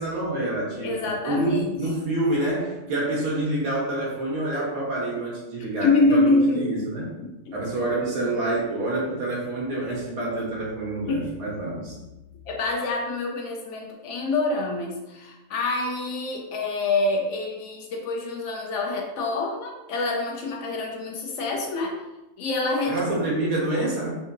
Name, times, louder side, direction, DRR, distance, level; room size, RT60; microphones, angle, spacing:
voice 1, 0.0-7.1 7.5-12.0 22.9-24.2, right 2 dB, 85° right, -5 dB, 1.5 m, -27 dB
voice 2, 0.8-1.7 5.6-7.5 8.0-8.3 11.1-11.3 12.5-22.0 22.4-23.0, left 2 dB, 70° left, 0 dB, 0.8 m, -26 dB
3.6 x 2.6 x 2.5 m, 1.0 s
omnidirectional pair, 1.4 m